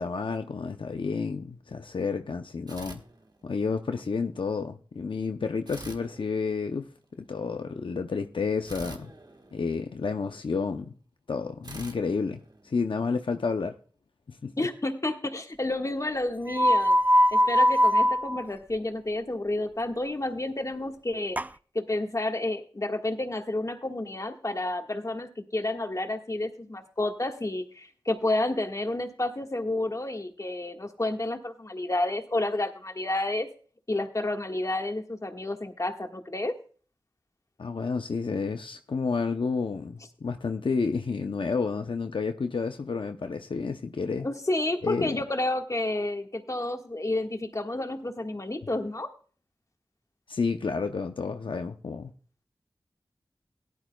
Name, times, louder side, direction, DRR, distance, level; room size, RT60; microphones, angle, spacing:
voice 1, 0.0-3.0 3.4-6.9 7.2-9.1 9.5-10.9 11.3-13.7 14.3-14.5 37.6-44.3 44.8-45.2 50.3-52.1, left 4 dB, 75° left, 0.6 m, -30 dB
sound 1, 2.7-3.8 5.7-7.0 8.6-10.3 11.6-13.2, right 2 dB, 55° right, 1.4 m, -46 dB
voice 2, 14.6-17.0 17.3-21.4 21.7-33.5 33.9-36.6 44.2-49.1, left 2 dB, 35° left, 1.6 m, -30 dB
sound 2, 16.5-18.4 21.4-21.5, equal, 20° right, 0.4 m, -21 dB
17.0 x 11.5 x 2.3 m
wide cardioid pair, 50°, 9 cm